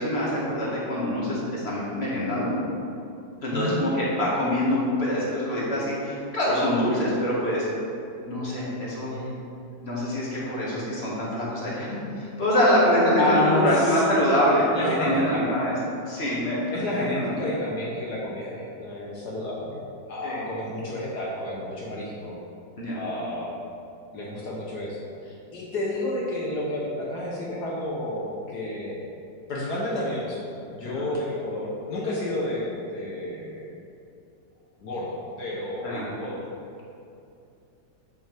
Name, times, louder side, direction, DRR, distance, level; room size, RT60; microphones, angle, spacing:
voice 1, 0.0-2.6 3.4-7.7 8.3-9.1 9.8-15.7 16.1-16.6 16.9-17.3 20.2-20.4 22.8-23.0 30.8-31.0 35.8-36.1, equal, 35° left, -6 dB, 1.9 m, -25 dB
voice 2, 13.2-14.0 14.7-15.4 16.7-19.8 20.1-22.3 23.0-23.6 24.1-29.0 29.5-33.7 34.8-36.5, left 1 dB, 60° left, -4 dB, 1.5 m, -30 dB
8.3 x 6.6 x 3.4 m, 2.6 s
omnidirectional pair, 2.1 m